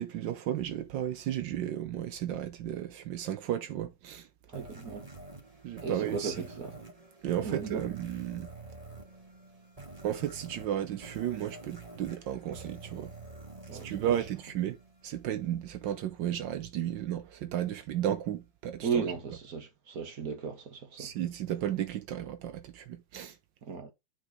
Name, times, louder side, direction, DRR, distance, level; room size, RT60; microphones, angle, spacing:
voice 1, 0.0-4.3 5.6-6.4 7.2-8.5 10.0-13.1 13.7-14.8 15.0-19.1 21.0-23.4, right 11 dB, 75° right, 1.4 m, -34 dB
sound 1, 4.5-15.3, right 3 dB, 20° right, 2.2 m, -48 dB
voice 2, 4.5-5.1 5.8-6.7 7.4-7.8 13.7-14.2 18.8-21.1 23.6-23.9, right 6 dB, 50° right, 1.9 m, -35 dB
7.2 x 6.2 x 3.8 m
omnidirectional pair, 2.0 m